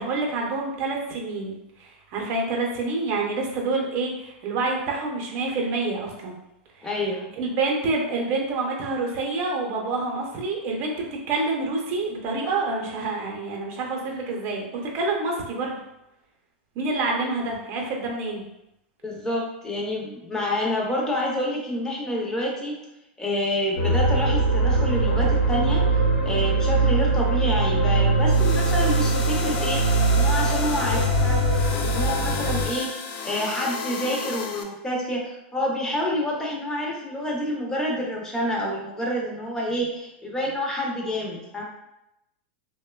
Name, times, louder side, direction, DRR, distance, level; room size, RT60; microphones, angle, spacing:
voice 1, 0.0-6.3 7.4-15.8 16.8-18.4, right 3 dB, 45° right, 0 dB, 0.7 m, -27 dB
voice 2, 6.8-7.3 19.0-22.8 23.2-25.9 26.2-31.4 31.7-32.9 33.2-41.6, left 1 dB, 10° left, -2 dB, 0.6 m, -28 dB
sound 1, 23.8-32.7, right 2 dB, 85° left, 0.8 m, -21 dB
sound 2, 28.3-34.6, left 5 dB, 60° left, 0.4 m, -33 dB
2.9 x 2.1 x 2.3 m, 0.88 s
hypercardioid pair, 125°, 6 cm